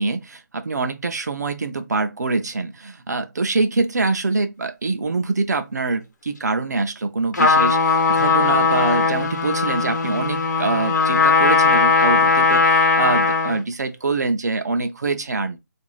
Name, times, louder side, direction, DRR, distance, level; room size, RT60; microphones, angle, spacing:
voice 1, 0.0-15.6, right 3 dB, 60° right, 0.5 m, -24 dB
Trumpet, 7.3-13.6, left 4 dB, 65° left, 0.9 m, -18 dB
2.5 x 2.3 x 3.0 m
hypercardioid pair, 180°, 10 cm